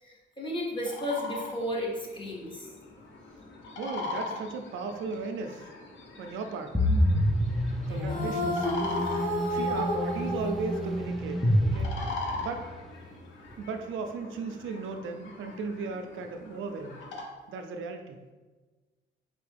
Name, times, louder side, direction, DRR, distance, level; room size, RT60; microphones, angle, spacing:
voice 1, 0.0-2.7 7.8-8.2, left 1 dB, 25° left, -3 dB, 1.3 m, -34 dB
sound 1, 0.8-17.2, left 3 dB, 70° left, 0.8 m, -41 dB
voice 2, 3.8-5.7 6.2-6.8 7.9-12.0 12.4-12.7 13.6-17.0 17.5-18.2, right 4 dB, 80° right, 6 dB, 0.5 m, -36 dB
sound 2, 6.7-12.7, equal, ahead, 0.4 m, -28 dB
sound 3, 8.1-11.5, left 1 dB, 45° left, 1.0 m, -31 dB
4.3 x 3.4 x 3.3 m, 1.3 s
cardioid pair, 90°, 20 cm